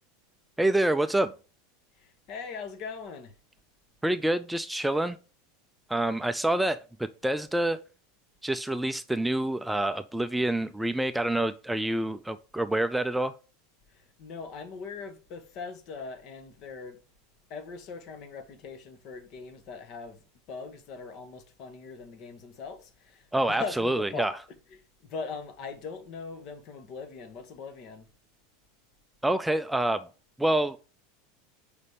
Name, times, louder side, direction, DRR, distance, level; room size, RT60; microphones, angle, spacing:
voice 1, 0.6-1.3 4.0-5.2 5.9-7.8 8.4-13.4 23.3-24.4 29.2-30.1 30.4-30.8, right 1 dB, 5° right, 0.4 m, -27 dB
voice 2, 2.0-3.3 14.2-17.0 17.5-20.2 20.5-24.3 25.1-28.1, left 5 dB, 50° left, 1.2 m, -40 dB
5.1 x 4.1 x 5.0 m
hypercardioid pair, 85°, 0 cm